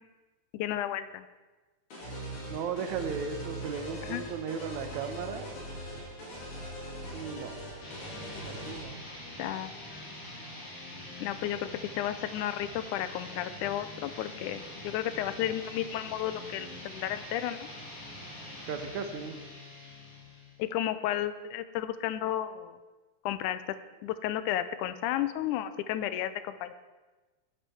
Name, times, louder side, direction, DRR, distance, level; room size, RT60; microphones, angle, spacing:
voice 1, 0.5-1.2 4.0-4.2 9.4-10.1 11.2-11.6 12.0-17.7 20.6-22.8 23.3-23.6 24.0-26.7, left 12 dB, 85° left, 13 dB, 2.1 m, -33 dB
sound 1, 1.9-8.8, equal, 65° left, 3.9 m, -41 dB
voice 2, 2.5-5.5 7.1-7.6 8.4-9.0 18.7-19.4, right 6 dB, 75° right, 8 dB, 2.2 m, -36 dB
sound 2, 7.8-20.7, left 1 dB, 45° left, 4.4 m, -44 dB
10.0 x 8.0 x 7.8 m, 1.2 s
omnidirectional pair, 3.6 m